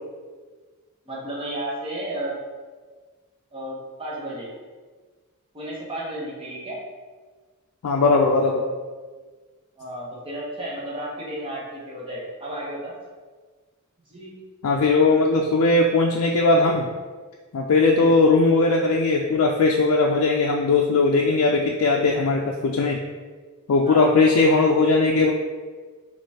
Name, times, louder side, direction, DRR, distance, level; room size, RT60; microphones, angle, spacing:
voice 1, 1.1-2.4 3.5-4.5 5.5-6.8 9.8-12.9 14.0-14.4 17.9-18.1 23.8-24.1, right 1 dB, 25° right, -5 dB, 1.0 m, -33 dB
voice 2, 7.8-8.6 14.6-16.9 17.5-23.0 23.7-25.3, left 3 dB, 75° left, 0 dB, 0.4 m, -19 dB
5.1 x 3.0 x 2.8 m, 1.4 s
head